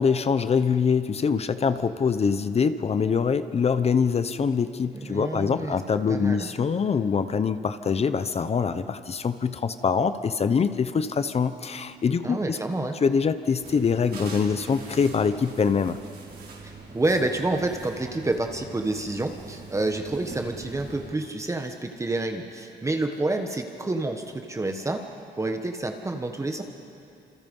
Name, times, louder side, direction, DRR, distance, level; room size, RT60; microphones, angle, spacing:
voice 1, 0.0-12.6 13.0-16.0, left 6 dB, 35° left, 11 dB, 0.8 m, -24 dB
voice 2, 4.9-5.8 6.1-6.5 12.2-13.0 16.6-25.1 25.4-26.6, right 2 dB, 15° right, 4 dB, 1.4 m, -28 dB
sound 1, 13.6-21.1, right 4 dB, 65° right, 4.9 m, -42 dB
28.5 x 27.5 x 5.5 m, 2.6 s
cardioid pair, 130°, 18 cm